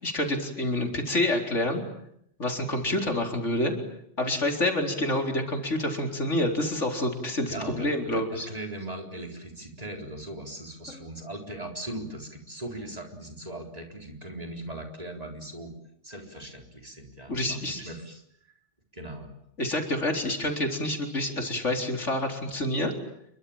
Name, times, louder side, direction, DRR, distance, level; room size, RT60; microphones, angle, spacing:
voice 1, 0.0-1.8 2.4-3.7 4.2-8.5 10.9-11.0 17.3-17.8 19.6-22.9, left 1 dB, 85° left, 3 dB, 4.5 m, -28 dB
voice 2, 7.5-15.7 16.0-18.2 18.9-19.3, right 1 dB, 30° right, 3 dB, 4.2 m, -39 dB
29.0 x 23.5 x 8.9 m, 0.73 s
omnidirectional pair, 1.2 m